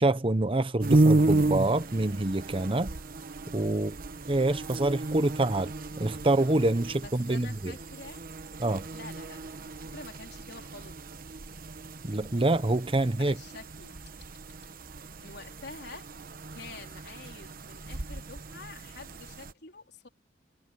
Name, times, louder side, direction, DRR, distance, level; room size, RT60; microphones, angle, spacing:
voice 1, 0.0-2.9 3.5-4.0 4.3-5.7 6.0-7.7 8.6-8.9 12.0-13.3, right 2 dB, 30° right, 0.9 m, -26 dB
sound 1, 0.8-19.5, right 2 dB, 55° right, 1.1 m, -32 dB
voice 2, 7.0-8.2 8.9-10.9 13.2-14.3 15.2-20.1, left 3 dB, 65° left, 4.1 m, -48 dB
head